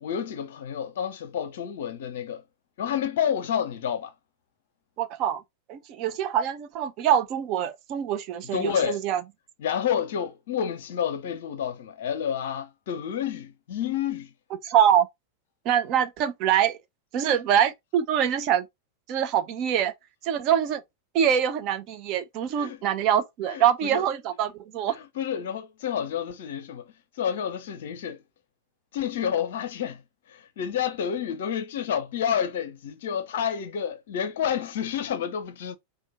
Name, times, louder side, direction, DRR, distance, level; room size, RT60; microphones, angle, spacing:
voice 1, 0.0-2.4 2.8-4.1 8.5-9.0 9.6-14.3 22.6-22.8 23.5-24.0 24.9-26.9 27.2-28.2 28.9-30.0 30.3-35.8, left 8 dB, 55° left, 0.5 m, -29 dB
voice 2, 5.0-5.4 5.7-9.2 14.6-15.1 15.6-16.8 17.1-18.6 19.1-19.9 20.2-20.8 21.1-25.0, right 9 dB, 40° right, 0.6 m, -24 dB
4.4 x 2.2 x 4.2 m
figure-of-eight pair, 90°, 0 cm